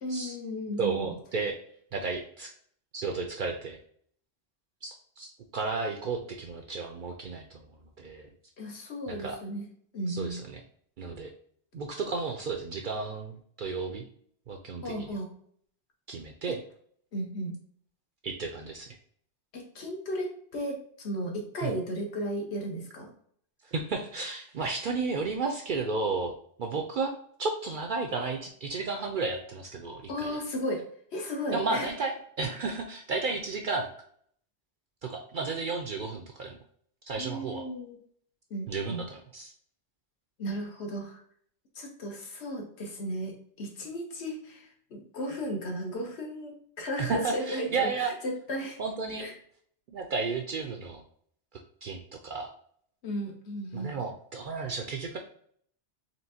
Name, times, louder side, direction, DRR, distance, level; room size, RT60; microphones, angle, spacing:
voice 1, 0.0-1.1 8.6-9.6 9.9-10.4 14.8-15.3 16.5-16.6 17.1-17.5 19.5-23.1 30.1-30.8 31.1-31.9 37.2-38.0 38.5-39.0 40.4-41.2 41.7-48.8 49.2-49.3 53.0-53.9, equal, 65° left, 3 dB, 1.2 m, -35 dB
voice 2, 0.8-1.5 1.9-2.5 2.9-3.8 4.8-7.6 8.0-8.3 9.1-9.4 10.1-10.6 11.0-11.3 11.7-14.0 14.5-15.1 16.1-16.6 18.2-19.0 21.6-21.7 23.6-27.1 27.4-30.4 31.5-33.9 35.0-36.6 37.1-37.6 38.7-39.5 47.0-48.1 48.8-49.3 49.9-51.0 51.8-52.0 52.2-52.5 53.7-55.2, right 4 dB, 60° right, 3 dB, 0.5 m, -33 dB
4.4 x 3.3 x 2.7 m, 0.62 s
omnidirectional pair, 1.2 m